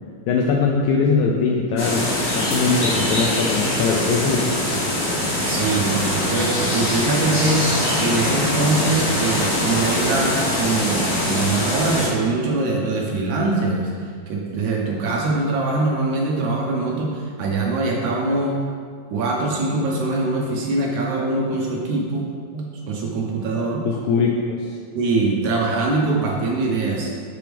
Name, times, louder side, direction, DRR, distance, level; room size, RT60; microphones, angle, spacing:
voice 1, 0.3-4.5 23.9-24.8, left 4 dB, 85° left, -1 dB, 1.7 m, -21 dB
sound 1, 1.8-12.1, left 1 dB, 45° left, 1.1 m, -22 dB
voice 2, 5.4-18.6 19.1-22.3 22.5-23.9 25.0-27.1, right 3 dB, 75° right, -1 dB, 1.9 m, -23 dB
6.1 x 5.8 x 3.4 m, 2.1 s
omnidirectional pair, 3.8 m